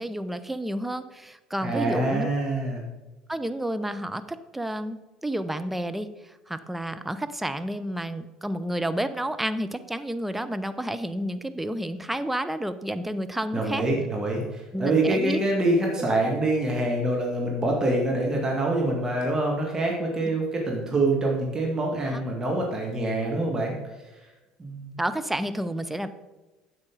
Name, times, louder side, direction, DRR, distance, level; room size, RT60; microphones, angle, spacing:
voice 1, 0.0-2.3 3.3-6.1 6.5-13.8 14.7-15.4 22.1-22.2 25.0-26.1, right 1 dB, 5° right, 10 dB, 0.5 m, -30 dB
voice 2, 1.6-2.8 13.5-23.7 24.6-25.0, right 2 dB, 25° right, -1 dB, 1.8 m, -25 dB
9.6 x 7.5 x 3.8 m, 1.1 s
figure-of-eight pair, 60°, 3 cm